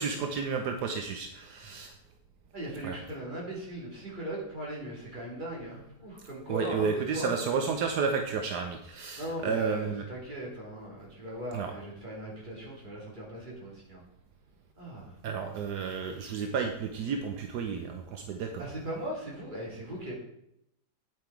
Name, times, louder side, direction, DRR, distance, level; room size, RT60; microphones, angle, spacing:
voice 1, 0.0-1.9 2.8-3.0 6.5-10.0 11.5-11.7 15.2-18.7, right 5 dB, 75° right, 5 dB, 1.3 m, -32 dB
voice 2, 2.5-7.3 9.2-14.0 14.8-15.2 18.6-20.1, right 1 dB, 25° right, -4 dB, 3.2 m, -39 dB
9.0 x 7.9 x 4.6 m, 0.79 s
omnidirectional pair, 1.8 m